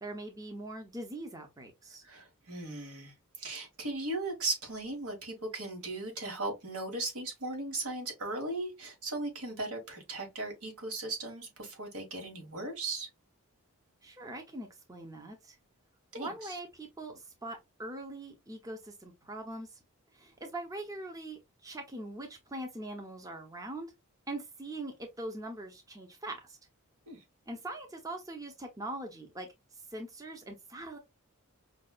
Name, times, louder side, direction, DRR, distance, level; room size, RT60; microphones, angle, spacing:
voice 1, 0.0-2.0 14.0-15.6 16.2-19.8 20.1-23.9 24.3-26.6 27.5-31.0, right 1 dB, 15° right, 0.6 m, -42 dB
voice 2, 2.0-13.1 16.1-16.6 27.1-27.2, right 2 dB, 80° right, 1.5 m, -37 dB
5.3 x 2.2 x 2.3 m
head